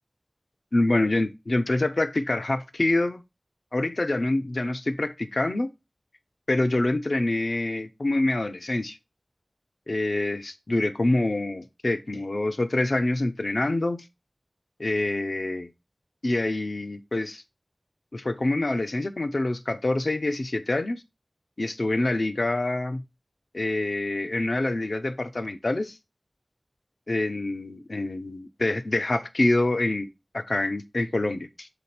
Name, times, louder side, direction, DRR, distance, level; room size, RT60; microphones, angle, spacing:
voice 1, 0.7-3.2 3.7-5.7 6.5-9.0 9.9-14.0 14.8-15.7 16.2-17.4 18.1-21.0 21.6-23.0 23.5-26.0 27.1-31.7, left 2 dB, 75° left, 0.6 m, -26 dB
6.9 x 4.0 x 4.2 m
wide cardioid pair, 45°, 0 cm